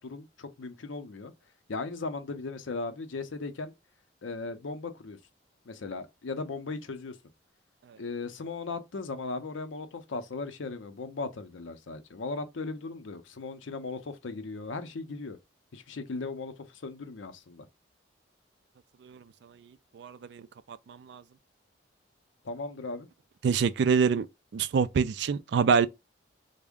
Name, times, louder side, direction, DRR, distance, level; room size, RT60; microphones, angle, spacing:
voice 1, 0.0-1.3 1.7-3.7 4.2-5.2 5.7-7.2 8.0-15.4 15.7-17.6 22.4-23.1, left 3 dB, 80° left, 0.6 m, -37 dB
voice 2, 20.0-20.4 20.7-21.2 23.4-24.3 24.5-25.9, right 6 dB, 60° right, 0.3 m, -26 dB
3.5 x 2.1 x 3.5 m
head